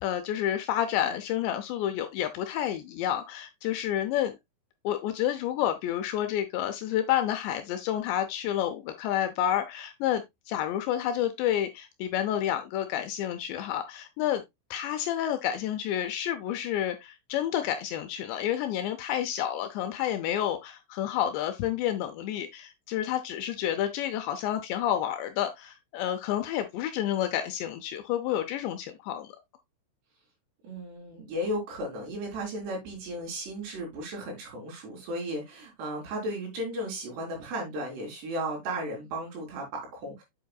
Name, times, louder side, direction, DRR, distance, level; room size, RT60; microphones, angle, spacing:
voice 1, 0.0-4.4 4.8-14.4 14.7-29.3, left 11 dB, 80° left, 2.7 m, -29 dB
voice 2, 30.6-40.2, right 1 dB, 60° right, 5.2 m, -35 dB
8.1 x 7.5 x 2.3 m
omnidirectional pair, 5.5 m